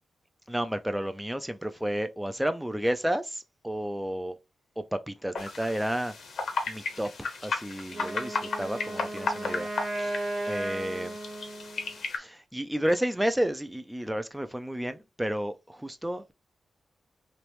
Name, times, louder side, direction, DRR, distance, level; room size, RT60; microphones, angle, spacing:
voice 1, 0.5-4.4 4.8-6.1 6.7-9.7 10.0-10.1 10.5-11.1 12.1-16.3, equal, 5° right, 0.3 m, -31 dB
sound 1, 5.3-12.2, left 4 dB, 65° left, 0.9 m, -35 dB
Wind instrument woodwind instrument, 7.9-12.0, right 1 dB, 50° right, 1.0 m, -35 dB
3.1 x 3.0 x 3.0 m
wide cardioid pair, 130°, 0 cm